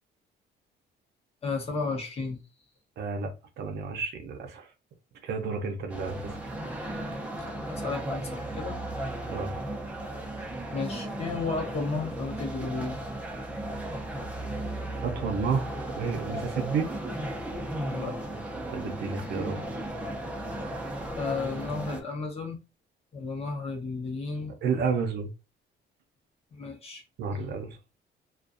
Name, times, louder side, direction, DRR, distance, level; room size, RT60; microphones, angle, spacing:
voice 1, 1.4-2.4 7.7-8.8 10.4-13.0 17.9-18.2 21.2-22.6 23.1-24.6 26.5-27.0, left 4 dB, 35° left, 0.8 m, -33 dB
voice 2, 3.0-4.7 5.2-6.4 9.3-9.5 15.0-16.9 18.7-19.6 24.6-25.3 27.2-27.8, right 5 dB, 65° right, 0.6 m, -31 dB
sound 1, 5.9-22.0, right 1 dB, 5° right, 0.5 m, -35 dB
2.5 x 2.3 x 2.4 m
cardioid pair, 140°, 19 cm